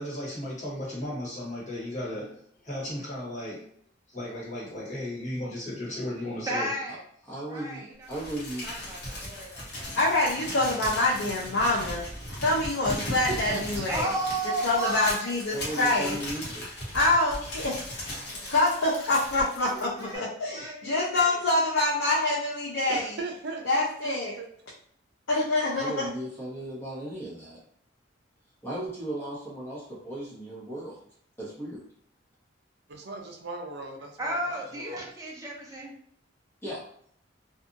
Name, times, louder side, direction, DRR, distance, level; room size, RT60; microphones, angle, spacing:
voice 1, 0.0-3.7 4.1-6.7, left 1 dB, 40° left, -7 dB, 1.3 m, -35 dB
voice 2, 6.5-7.0 7.5-10.0 13.7-16.1 16.4-17.3 18.1-18.5 19.6-21.6 34.2-35.9, right 1 dB, 15° right, -2 dB, 0.6 m, -35 dB
voice 3, 7.3-8.7 15.5-16.6 25.7-27.6 28.6-31.0 31.4-31.8 36.6-36.8, right 1 dB, 10° left, -7 dB, 0.9 m, -36 dB
Crumpling crinkling, 8.1-20.2, left 1 dB, 55° left, 1.1 m, -37 dB
voice 4, 9.9-12.0 12.4-14.1 14.6-16.2 16.9-23.2 23.6-24.3 25.3-26.1, left 2 dB, 80° left, -5 dB, 0.6 m, -26 dB
voice 5, 13.3-13.9 22.9-24.5 32.9-35.1, right 3 dB, 60° right, 2 dB, 0.5 m, -38 dB
2.7 x 2.4 x 2.5 m, 0.63 s
head